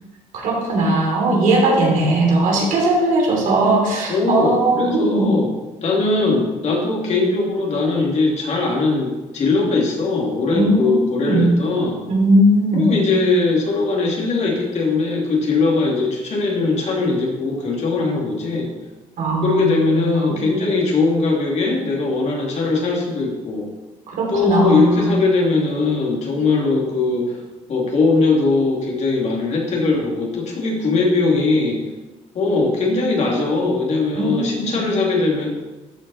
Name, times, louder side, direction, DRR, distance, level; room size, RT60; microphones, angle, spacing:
voice 1, 0.4-5.3 10.5-11.5 12.1-12.9 19.2-20.4 24.1-25.1 34.1-34.7, right 1 dB, 75° right, -1 dB, 3.2 m, -18 dB
voice 2, 4.1-5.5 5.8-12.0 12.7-18.7 19.4-23.7 24.3-27.4 27.7-31.8 32.3-35.5, left 3 dB, 55° left, -2 dB, 2.8 m, -20 dB
13.0 x 5.6 x 4.2 m, 1.1 s
cardioid pair, 100°, 14 cm